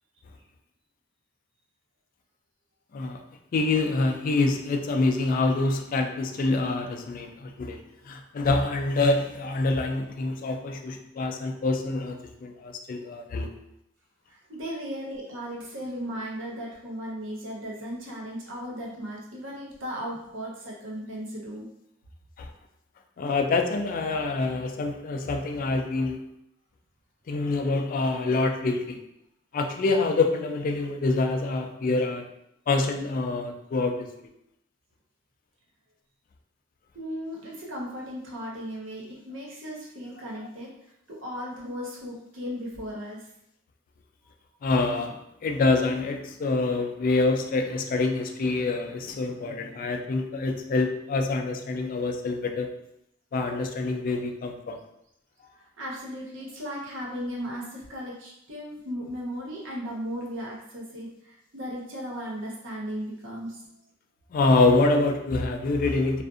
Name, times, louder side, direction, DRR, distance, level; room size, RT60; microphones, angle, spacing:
voice 1, 3.5-7.8 8.1-13.5 22.4-22.5 23.2-26.2 27.3-29.0 29.5-32.3 32.7-34.1 44.6-52.7 53.3-54.8 64.3-66.2, left 3 dB, 45° left, 4 dB, 0.3 m, -26 dB
voice 2, 14.3-21.7 36.9-40.7 41.1-43.3 55.6-63.6, equal, 70° right, -3 dB, 0.8 m, -36 dB
2.5 x 2.4 x 2.4 m, 0.79 s
head